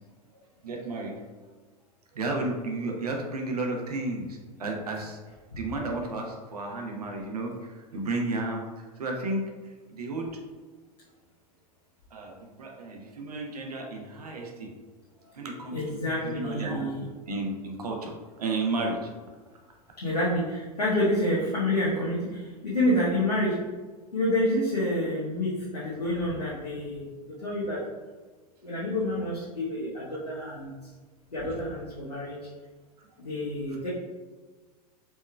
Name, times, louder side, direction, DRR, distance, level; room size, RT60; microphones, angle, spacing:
voice 1, 0.6-1.2 2.1-5.2 5.5-8.6 9.0-9.4 9.9-10.3 12.1-14.7 15.3-19.1 33.7-33.8, right 2 dB, 75° right, 1 dB, 0.7 m, -33 dB
voice 2, 15.7-17.0 20.0-23.6 24.1-27.8 28.6-30.7 31.3-32.4 33.2-33.9, left 1 dB, 85° left, -8 dB, 0.9 m, -28 dB
4.4 x 3.0 x 2.2 m, 1.4 s
figure-of-eight pair, 90°, 20 cm